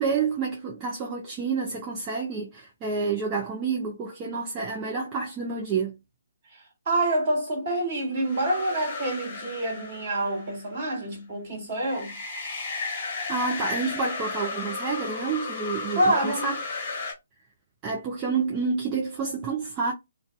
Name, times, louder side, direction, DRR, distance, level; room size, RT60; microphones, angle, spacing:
voice 1, 0.0-6.0 13.3-16.6 17.8-19.9, right 5 dB, 20° right, 0.5 m, -29 dB
voice 2, 6.8-12.2 15.9-16.5, right 1 dB, 40° right, 1.6 m, -27 dB
sound 1, 8.2-10.7 11.8-17.1, left 4 dB, 40° left, 0.9 m, -34 dB
2.5 x 2.2 x 2.2 m
figure-of-eight pair, 135°, 0 cm